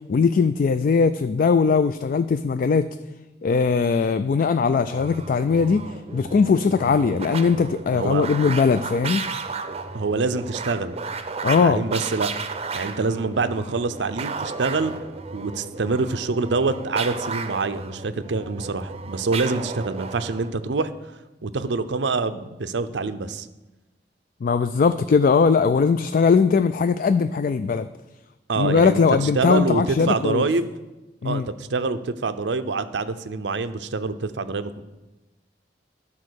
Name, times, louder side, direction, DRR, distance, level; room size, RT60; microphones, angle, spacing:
voice 1, 0.1-2.9 3.4-5.9 6.1-9.2 11.4-11.9 24.4-27.9 28.6-30.5 31.2-31.5, left 5 dB, 50° left, 11 dB, 0.3 m, -20 dB
sound 1, 4.9-20.5, right 4 dB, 35° right, 0.6 m, -33 dB
voice 2, 7.9-8.3 9.9-11.0 11.6-12.3 12.7-14.9 15.3-20.9 21.4-23.5 28.5-30.7 31.2-34.8, right 3 dB, 90° right, 11 dB, 0.6 m, -26 dB
11.5 x 4.2 x 6.4 m, 1.1 s
head